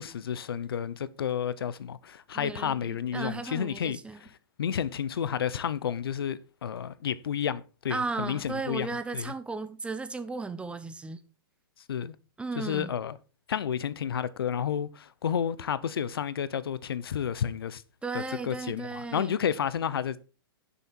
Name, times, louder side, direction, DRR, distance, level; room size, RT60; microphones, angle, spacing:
voice 1, 0.0-8.9 9.1-9.3 11.9-12.2 12.6-13.2 13.5-17.8 18.1-20.2, left 8 dB, 75° left, 0.9 m, -31 dB
voice 2, 2.3-4.2 7.9-11.2 12.4-12.9 18.0-19.3, right 3 dB, 10° right, 1.0 m, -35 dB
11.0 x 7.0 x 4.5 m
hypercardioid pair, 115°, 12 cm